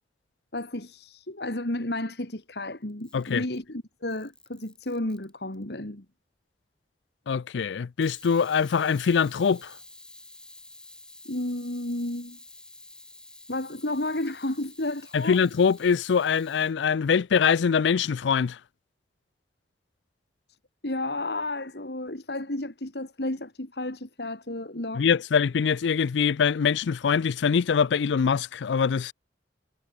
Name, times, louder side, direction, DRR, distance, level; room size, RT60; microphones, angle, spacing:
voice 1, 0.5-6.0 11.2-12.4 13.5-15.4 20.8-25.0, left 1 dB, 65° left, 2.5 m, -32 dB
Camera, 2.9-3.7 4.1-5.6 8.0-16.7, left 2 dB, 5° left, 6.2 m, -50 dB
voice 2, 3.1-3.5 7.3-9.7 15.1-18.6 24.9-29.1, left 6 dB, 85° left, 0.4 m, -23 dB
head